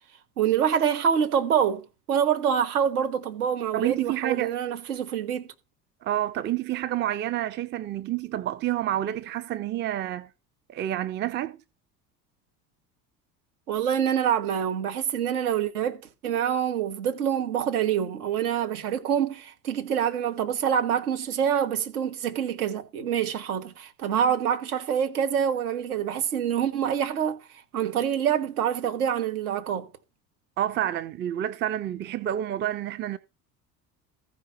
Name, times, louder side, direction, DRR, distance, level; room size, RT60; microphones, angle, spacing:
voice 1, 0.4-5.5 13.7-29.9, right 8 dB, 70° right, 1.4 m, -26 dB
voice 2, 3.7-4.5 6.0-10.3 10.7-11.6 30.6-33.2, right 12 dB, 25° right, 0.5 m, -29 dB
14.5 x 5.0 x 4.3 m
figure-of-eight pair, 65°, 47 cm